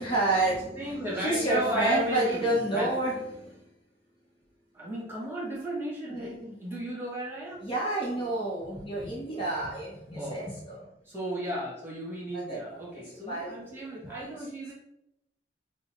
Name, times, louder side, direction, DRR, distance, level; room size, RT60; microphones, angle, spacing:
voice 1, 0.0-3.6 6.0-6.6 7.6-10.9 12.3-14.3, right 2 dB, 30° left, -4 dB, 0.8 m, -30 dB
voice 2, 0.8-2.9 4.7-7.6 10.1-10.5 11.0-14.7, equal, 15° right, -5 dB, 1.4 m, -34 dB
3.8 x 2.0 x 4.4 m, 0.83 s
head